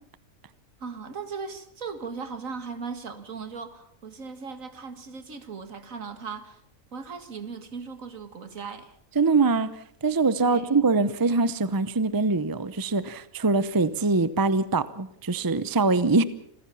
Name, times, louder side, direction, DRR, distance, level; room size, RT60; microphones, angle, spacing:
voice 1, 0.8-6.6 6.9-9.0 10.4-10.7, right 5 dB, 70° right, 10 dB, 2.2 m, -38 dB
voice 2, 9.2-9.7 10.0-16.2, right 3 dB, 20° right, 15 dB, 0.6 m, -23 dB
26.5 x 15.5 x 7.0 m, 0.71 s
omnidirectional pair, 1.4 m